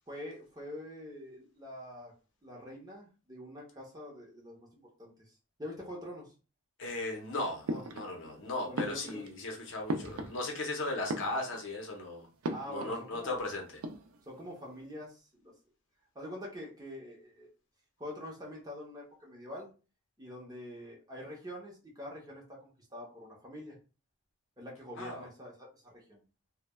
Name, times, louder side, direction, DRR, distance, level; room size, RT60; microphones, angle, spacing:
voice 1, 0.1-2.1 2.4-6.3 7.7-7.8 8.7-9.3 10.0-10.3 12.5-13.4 14.3-15.5 16.1-17.5 18.0-19.7 20.2-23.8 24.6-26.2, left 1 dB, 15° right, 0.7 m, -45 dB
voice 2, 6.8-7.7 7.9-12.3 12.7-13.6 25.0-25.2, left 2 dB, 55° left, 0.7 m, -36 dB
sound 1, 7.7-8.4 8.7-10.7 11.0-11.8 12.4-13.0 13.3-13.4 13.7-14.4, right 2 dB, 70° right, 0.4 m, -38 dB
3.1 x 2.1 x 2.2 m
head